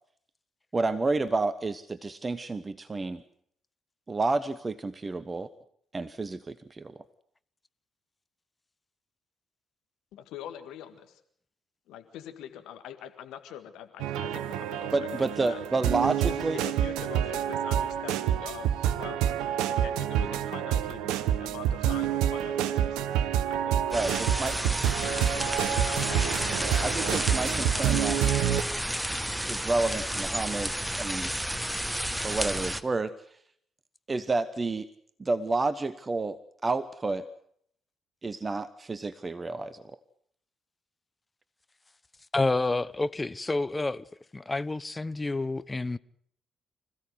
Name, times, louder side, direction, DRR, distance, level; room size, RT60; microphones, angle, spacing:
voice 1, 0.7-3.2 4.1-5.5 5.9-7.0 14.9-16.6 23.9-24.6 26.8-28.2 29.5-31.3 32.2-33.1 34.1-34.9 35.2-37.2 38.2-39.8, right 3 dB, 30° right, 1.0 m, -30 dB
voice 2, 10.1-11.2 11.9-15.6 16.3-23.0 23.4-24.2 24.9-27.3, left 10 dB, 65° left, 1.8 m, -44 dB
sound 1, 14.0-28.6, right 10 dB, 70° right, 0.8 m, -28 dB
sound 2, 23.9-32.8, right 1 dB, 5° right, 1.3 m, -31 dB
voice 3, 42.3-44.0 44.3-46.0, left 2 dB, 20° left, 0.8 m, -29 dB
25.5 x 16.0 x 8.0 m
figure-of-eight pair, 45°, 0 cm